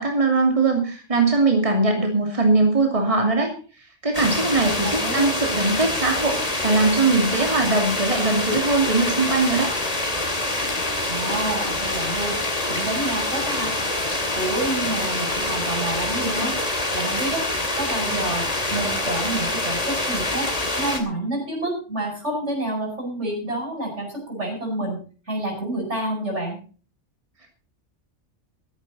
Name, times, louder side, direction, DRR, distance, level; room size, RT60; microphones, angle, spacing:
voice 1, 0.0-3.5 4.0-9.7, right 3 dB, 30° right, 2 dB, 2.8 m, -21 dB
sound 1, 4.1-21.0, left 2 dB, 30° left, 2.8 m, -26 dB
voice 2, 4.8-5.3 11.1-13.7 14.3-16.5 16.9-17.5 17.7-20.5 20.8-26.6, right 2 dB, 70° right, 1 dB, 8.2 m, -28 dB
14.5 x 13.5 x 4.2 m, 0.38 s
omnidirectional pair, 1.2 m